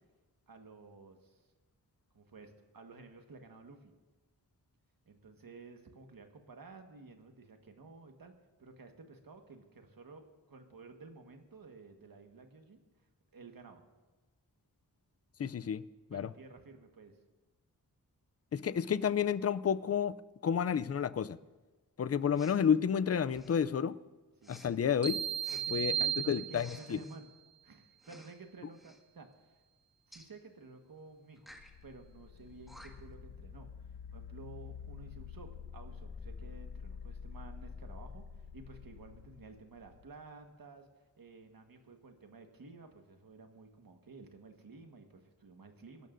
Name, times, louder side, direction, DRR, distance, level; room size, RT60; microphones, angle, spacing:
voice 1, 0.5-1.4 2.1-3.9 5.1-8.3 8.6-12.8 13.3-13.8 16.1-17.2 24.4-24.6 25.5-27.3 27.6-29.6 30.1-31.5 31.8-33.7 34.1-40.9 41.2-46.1, right 3 dB, 65° right, 4 dB, 1.5 m, -53 dB
voice 2, 15.4-15.8 16.1-16.3 18.5-20.2 20.4-21.4 22.0-24.0 24.5-25.2 25.7-27.0, left 7 dB, 40° left, 16 dB, 0.4 m, -30 dB
Respiratory sounds, 22.3-22.6 23.3-23.7 24.4-24.7 25.4-25.6 26.5-27.2 28.0-28.4 28.7-29.0 30.1-30.3 31.4-31.7 32.4-32.5 32.7-33.1, equal, ahead, 1.7 m, -55 dB
sound 1, 25.0-27.0, right 9 dB, 30° right, 1.3 m, -35 dB
sound 2, 31.5-40.3, left 6 dB, 85° left, 0.7 m, -48 dB
26.5 x 12.0 x 2.6 m, 1.2 s
wide cardioid pair, 120°, 37 cm